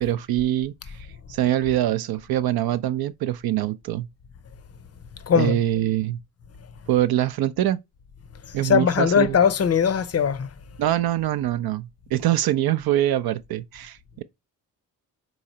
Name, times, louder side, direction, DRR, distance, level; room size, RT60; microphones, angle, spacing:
voice 1, 0.0-4.1 5.3-6.2 6.9-7.8 8.5-9.4 10.8-14.2, right 13 dB, 65° right, 0.5 m, -24 dB
voice 2, 5.3-5.6 8.6-10.5, left 7 dB, 40° left, 0.5 m, -20 dB
3.9 x 3.1 x 2.7 m
supercardioid pair, 50°, 40 cm